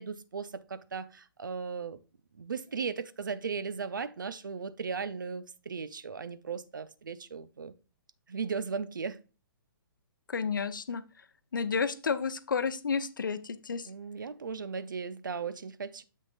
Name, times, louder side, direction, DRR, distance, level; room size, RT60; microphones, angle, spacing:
voice 1, 0.0-2.0 2.4-7.7 8.3-9.2 13.9-16.0, right 5 dB, 60° right, 0.7 m, -37 dB
voice 2, 10.3-11.0 11.5-13.9, left 5 dB, 60° left, 0.7 m, -31 dB
7.6 x 6.1 x 2.4 m
figure-of-eight pair, 125°, 12 cm